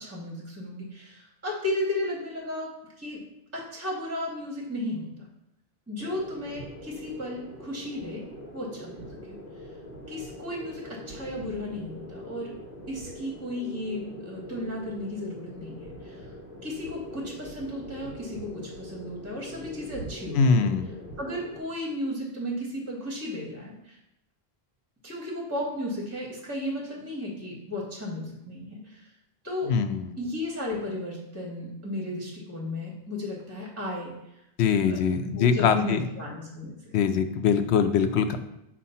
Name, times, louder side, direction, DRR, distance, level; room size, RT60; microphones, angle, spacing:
voice 1, 0.0-3.2 3.5-5.3 5.9-8.2 8.5-9.4 10.1-12.5 12.9-16.3 16.6-20.7 21.2-24.0 25.0-29.1 29.4-29.7 30.2-34.1 34.9-36.7, left 1 dB, 15° right, -3 dB, 1.2 m, -34 dB
sound 1, 6.0-21.6, equal, 55° left, 1.4 m, -43 dB
voice 2, 20.3-20.9 29.7-30.1 34.6-36.0 36.9-38.4, left 6 dB, 90° left, 8 dB, 0.9 m, -23 dB
7.2 x 2.5 x 5.5 m, 0.85 s
omnidirectional pair, 1.1 m